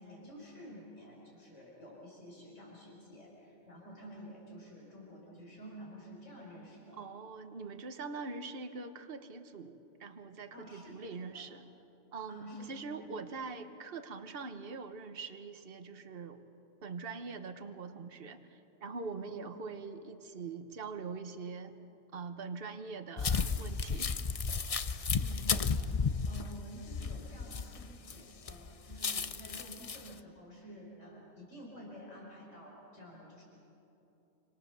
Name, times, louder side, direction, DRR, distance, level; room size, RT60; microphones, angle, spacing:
voice 1, 0.0-7.0 10.5-11.5 12.3-13.3 19.1-19.4 25.2-33.4, equal, 80° left, -3 dB, 5.3 m, -50 dB
voice 2, 7.0-11.6 12.1-16.4 16.8-21.7 22.1-24.1, right 4 dB, 50° right, 8 dB, 1.5 m, -43 dB
sound 1, 23.2-28.1 28.5-30.1, left 5 dB, 35° left, 0.7 m, -33 dB
27.5 x 26.5 x 7.0 m, 3.0 s
omnidirectional pair, 1.2 m